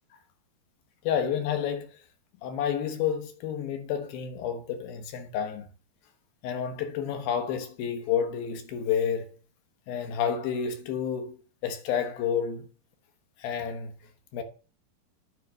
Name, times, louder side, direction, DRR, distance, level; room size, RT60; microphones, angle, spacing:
voice 1, 1.0-2.0 2.4-5.7 6.4-9.4 9.9-12.7 13.4-13.9 14.3-14.4, left 8 dB, 90° left, 3.0 m, -30 dB
9.3 x 3.5 x 6.3 m
omnidirectional pair, 4.1 m